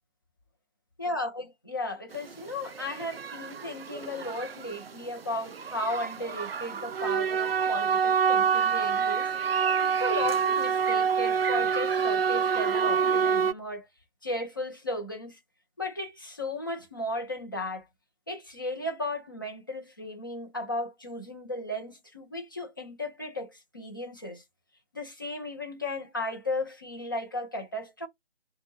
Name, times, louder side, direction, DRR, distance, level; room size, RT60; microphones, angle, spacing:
voice 1, 1.0-9.3 9.8-13.9 14.2-15.4 15.8-17.8 18.3-24.4 24.9-28.1, left 1 dB, 20° left, 0.7 m, -35 dB
sound 1, 2.1-2.3 2.6-13.5, right 6 dB, 65° right, 0.5 m, -27 dB
5.8 x 2.3 x 3.2 m
figure-of-eight pair, 155°, 31 cm